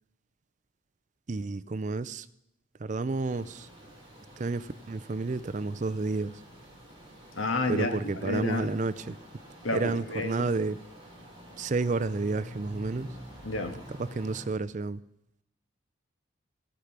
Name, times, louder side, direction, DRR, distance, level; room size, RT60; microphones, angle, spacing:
voice 1, 1.3-2.2 2.9-3.5 4.4-4.6 4.9-6.3 7.7-9.1 9.7-10.7 11.6-13.1 14.2-15.0, right 3 dB, 35° right, 14 dB, 0.4 m, -30 dB
sound 1, 3.3-14.4, equal, 20° right, 4.0 m, -48 dB
voice 2, 7.3-8.7 9.6-10.5 13.4-13.8, left 2 dB, 80° left, 5 dB, 1.7 m, -30 dB
15.0 x 8.4 x 5.9 m, 0.81 s
head